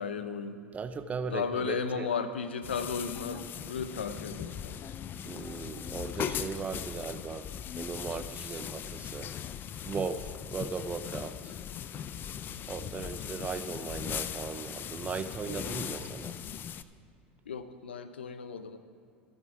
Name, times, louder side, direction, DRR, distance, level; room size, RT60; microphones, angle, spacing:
voice 1, 0.0-0.6 1.3-4.8 12.5-12.7 17.5-18.8, left 5 dB, 85° left, 11 dB, 0.5 m, -35 dB
voice 2, 0.7-2.1 5.2-7.5 7.8-9.3 9.8-11.5 12.7-16.3, right 5 dB, 25° right, 10 dB, 0.6 m, -37 dB
sound 1, 2.6-16.8, left 9 dB, 35° left, 0.4 m, -39 dB
16.0 x 6.3 x 4.8 m, 2.4 s
hypercardioid pair, 85°, 6 cm